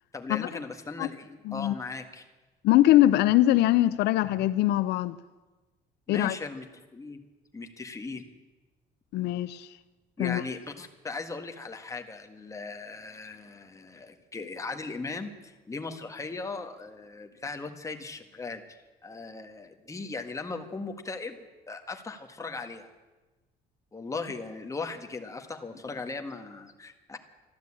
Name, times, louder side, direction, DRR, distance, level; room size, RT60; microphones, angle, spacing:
voice 1, 0.1-2.2 6.1-6.7 6.9-7.2 7.5-8.2 10.2-18.6 19.0-22.9 23.9-27.2, left 3 dB, 20° left, 1.6 m, -38 dB
voice 2, 1.4-1.8 2.6-5.2 6.1-6.4 9.1-9.8 10.2-10.4, left 14 dB, 80° left, 0.5 m, -22 dB
13.5 x 12.0 x 8.6 m
cardioid pair, 110°, 17 cm